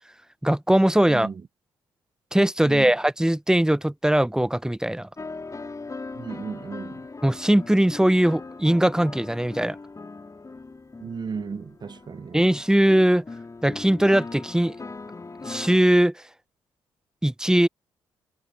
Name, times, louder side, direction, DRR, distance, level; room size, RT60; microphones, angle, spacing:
voice 1, 0.4-1.3 2.3-5.1 7.2-9.8 12.3-13.2 13.6-14.8 15.4-16.2 17.2-17.7, right 1 dB, 5° right, 0.9 m, -20 dB
voice 2, 1.1-1.4 2.6-2.9 6.1-7.0 11.0-12.4, right 5 dB, 40° right, 1.1 m, -35 dB
sound 1, 5.2-15.8, left 3 dB, 30° left, 5.2 m, -39 dB
hypercardioid pair, 40°, 11 cm